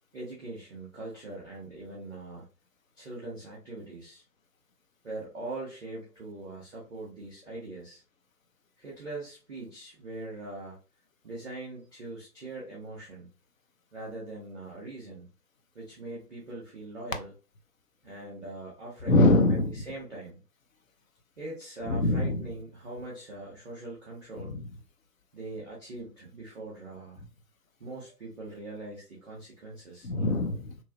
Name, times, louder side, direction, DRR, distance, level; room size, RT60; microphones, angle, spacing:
voice 1, 0.1-2.5 3.0-4.2 5.0-8.0 8.8-10.8 11.2-13.3 13.9-15.3 15.7-17.3 18.0-19.2 19.7-20.4 21.4-24.6 25.3-27.2 27.8-30.1, right 2 dB, ahead, -5 dB, 0.5 m, -41 dB
voice 2, 19.1-19.8 21.9-22.4 24.4-24.6 30.0-30.8, left 2 dB, 60° left, 6 dB, 0.7 m, -23 dB
3.0 x 2.4 x 2.3 m, 0.33 s
figure-of-eight pair, 130°, 47 cm